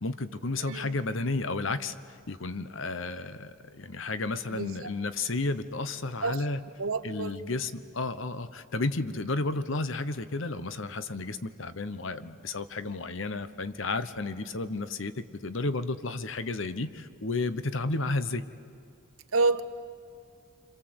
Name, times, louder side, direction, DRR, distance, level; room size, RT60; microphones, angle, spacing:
voice 1, 0.0-6.6 7.0-18.4, left 3 dB, 65° left, 1.0 m, -32 dB
voice 2, 0.6-0.9 4.5-4.8 6.2-6.4 6.8-7.4 19.3-19.6, right 3 dB, 75° right, 1.0 m, -28 dB
27.0 x 26.5 x 8.0 m
head